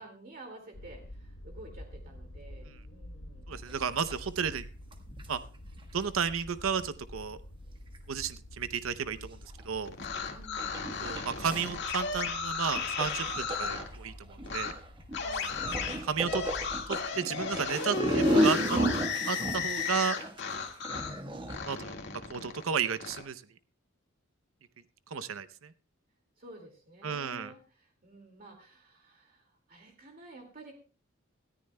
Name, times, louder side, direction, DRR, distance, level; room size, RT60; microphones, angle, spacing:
voice 1, 0.0-3.6 10.3-10.8 15.1-15.5 26.4-30.7, right 2 dB, 45° right, 2 dB, 2.1 m, -51 dB
sound 1, 0.7-17.1, left 1 dB, 80° left, 1.1 m, -48 dB
sound 2, 3.5-3.8 4.1-4.2 4.5-4.6 4.9-6.0 7.9-8.0 9.6-9.7 10.0-10.2 10.6-12.2 12.7-21.6, equal, 25° right, 1.2 m, -32 dB
voice 2, 3.5-4.6 5.3-5.4 5.9-7.4 8.1-9.4 9.6-9.9 11.0-14.7 16.0-16.4 16.9-18.8 19.3-20.2 21.6-22.0 22.3-23.4 25.1-25.7 27.0-27.5, right 6 dB, 80° right, 14 dB, 0.7 m, -33 dB
sound 3, 9.9-13.9 14.5-14.7 15.1-21.2 21.5-23.2, left 5 dB, 60° left, 1.8 m, -35 dB
19.5 x 14.0 x 2.2 m, 0.37 s
head